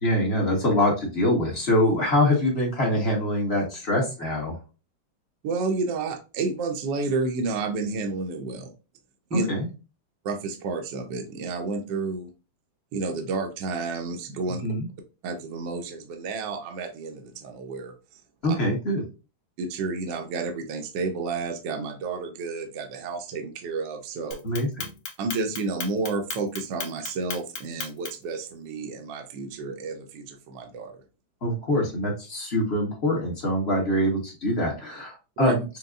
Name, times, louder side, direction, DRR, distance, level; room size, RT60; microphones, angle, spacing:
voice 1, 0.0-4.6 9.3-9.7 14.6-14.9 18.4-19.0 24.4-24.9 31.4-35.6, left 1 dB, 35° left, -2 dB, 1.2 m, -24 dB
voice 2, 5.4-8.7 9.3-9.5 10.2-12.3 12.9-14.6 15.2-17.9 18.5-18.6 19.6-24.4 25.2-31.0 35.4-35.5, right 3 dB, 70° right, 4 dB, 1.2 m, -30 dB
Clock, 24.3-28.3, left 5 dB, 85° left, 1.9 m, -35 dB
6.5 x 2.3 x 2.4 m, 0.31 s
omnidirectional pair, 2.4 m